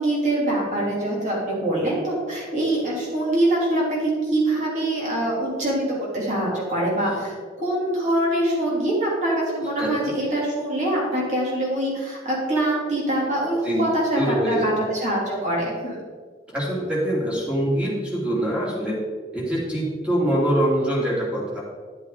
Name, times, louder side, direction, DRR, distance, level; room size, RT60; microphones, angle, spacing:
voice 1, 0.0-16.0, right 1 dB, 40° right, -4 dB, 3.4 m, -24 dB
voice 2, 14.1-14.7 16.5-19.0 19.3-21.6, right 1 dB, 5° right, -6 dB, 2.9 m, -24 dB
11.0 x 7.9 x 4.1 m, 1.5 s
head